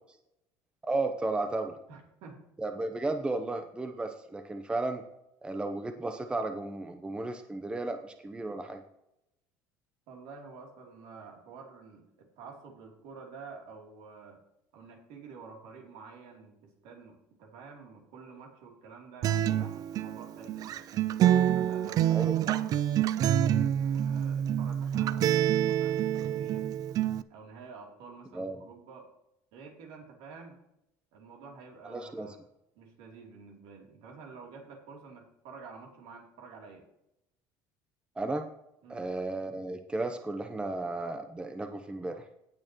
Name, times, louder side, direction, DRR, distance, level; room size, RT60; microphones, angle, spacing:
voice 1, 0.8-1.8 2.6-5.0 5.4-8.8 22.1-22.3 28.3-28.6 31.9-32.3 38.2-38.5 38.9-42.2, right 2 dB, 10° right, 6 dB, 0.7 m, -34 dB
voice 2, 1.9-2.5 10.1-14.4 14.7-20.8 21.3-22.7 23.2-26.7 27.3-29.1 29.5-30.6 31.1-32.4 32.7-36.8 38.8-39.1, right 5 dB, 75° right, 0 dB, 3.1 m, -49 dB
Acoustic guitar, 19.2-27.2, right 11 dB, 45° right, 0.4 m, -27 dB
17.5 x 6.5 x 3.0 m, 0.82 s
cardioid pair, 135°, 9 cm